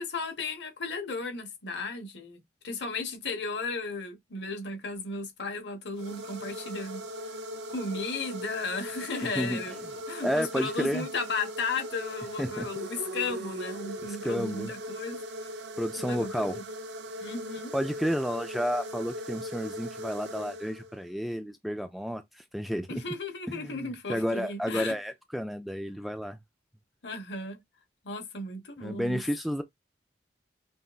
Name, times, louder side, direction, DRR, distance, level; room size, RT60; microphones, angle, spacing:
voice 1, 0.0-7.1 7.4-15.5 16.0-16.6 17.2-17.8 22.9-24.9 27.0-27.6 28.0-29.2, left 3 dB, 75° left, 1.1 m, -35 dB
sound 1, 5.9-21.1, equal, 75° right, 0.7 m, -39 dB
voice 2, 9.2-9.6 10.2-11.1 12.4-12.7 14.0-14.7 15.8-16.6 17.7-23.0 23.5-26.4 28.8-29.6, equal, ahead, 0.3 m, -31 dB
5.5 x 2.5 x 2.3 m
head